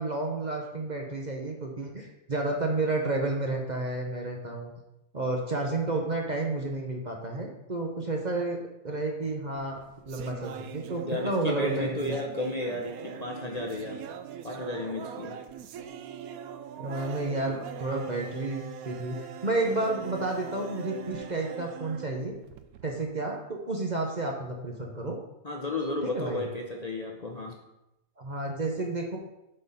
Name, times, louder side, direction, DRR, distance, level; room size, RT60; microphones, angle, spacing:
voice 1, 0.0-4.7 5.1-8.6 8.8-12.1 16.8-22.3 22.8-25.2 26.0-26.4 28.2-29.2, right 2 dB, 35° right, 1 dB, 0.9 m, -31 dB
sound 1, 9.5-23.0, right 9 dB, 85° right, 1.1 m, -41 dB
voice 2, 11.1-14.0 14.4-15.4 25.4-27.6, left 2 dB, 35° left, 0 dB, 0.8 m, -33 dB
8.2 x 4.5 x 5.5 m, 0.90 s
omnidirectional pair, 1.5 m